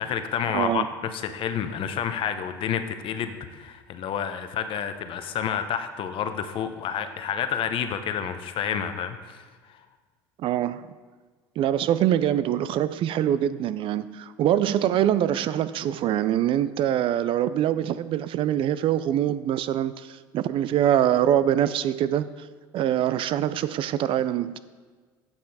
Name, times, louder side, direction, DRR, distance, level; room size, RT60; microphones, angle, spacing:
voice 1, 0.0-9.8, left 8 dB, 50° left, 9 dB, 0.8 m, -29 dB
voice 2, 0.5-0.9 10.4-10.9 11.6-22.5 22.7-24.6, right 11 dB, 50° right, 15 dB, 0.4 m, -24 dB
8.9 x 5.7 x 4.1 m, 1.4 s
hypercardioid pair, 75°, 11 cm